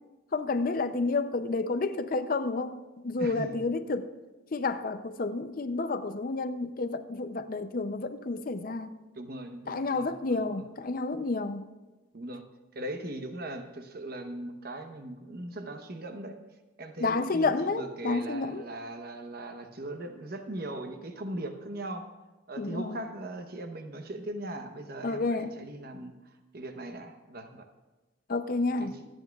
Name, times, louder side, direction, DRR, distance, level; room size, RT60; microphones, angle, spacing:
voice 1, 0.3-4.1 4.5-9.0 9.7-11.6 17.0-18.6 22.6-23.0 25.0-25.6 28.3-28.9, left 3 dB, 45° left, 11 dB, 0.5 m, -30 dB
voice 2, 3.2-3.6 9.2-10.6 12.1-12.4 12.7-16.4 16.8-22.1 22.5-27.7 28.8-29.1, right 1 dB, 45° right, 6 dB, 0.9 m, -39 dB
25.0 x 9.0 x 2.3 m, 1.2 s
head